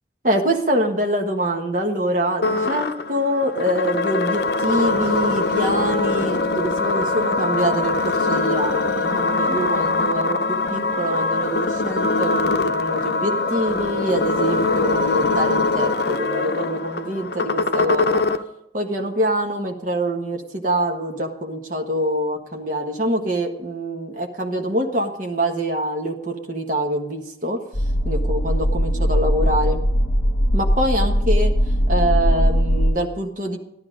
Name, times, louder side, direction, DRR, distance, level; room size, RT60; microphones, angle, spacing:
voice 1, 0.2-18.2 18.7-27.6 28.0-29.8 30.5-31.5 31.9-33.6, right 1 dB, 50° right, 2 dB, 1.4 m, -25 dB
sound 1, 2.4-18.4, left 3 dB, 60° left, 0.6 m, -22 dB
sound 2, 27.7-32.9, equal, 45° left, 1.4 m, -19 dB
13.0 x 12.0 x 5.2 m, 0.81 s
head